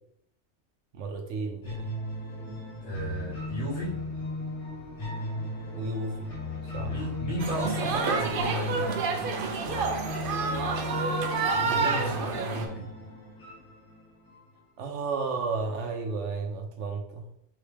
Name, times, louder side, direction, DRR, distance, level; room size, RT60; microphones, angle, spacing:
voice 1, 0.9-2.0 5.7-6.3 6.7-7.1 11.8-12.3 14.8-17.3, right 4 dB, 80° right, 3 dB, 1.0 m, -33 dB
sound 1, 1.6-14.6, left 2 dB, 70° left, 1.5 m, -36 dB
voice 2, 2.8-4.0 6.8-9.0 11.5-12.9, right 2 dB, 55° left, -7 dB, 1.7 m, -34 dB
sound 2, 7.4-12.6, right 4 dB, 60° right, 0.7 m, -29 dB
3.7 x 3.3 x 3.3 m, 0.75 s
omnidirectional pair, 1.2 m